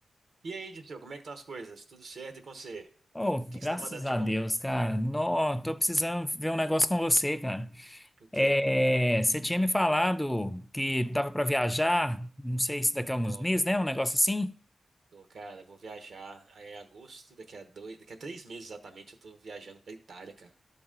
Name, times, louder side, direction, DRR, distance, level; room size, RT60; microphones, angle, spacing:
voice 1, 0.4-2.9 3.5-4.3 8.2-8.6 13.2-13.5 15.1-20.5, right 3 dB, 80° right, 1.0 m, -44 dB
voice 2, 3.2-8.1 8.3-14.5, left 1 dB, 10° left, 0.3 m, -28 dB
12.0 x 4.0 x 3.7 m
wide cardioid pair, 85°, 0 cm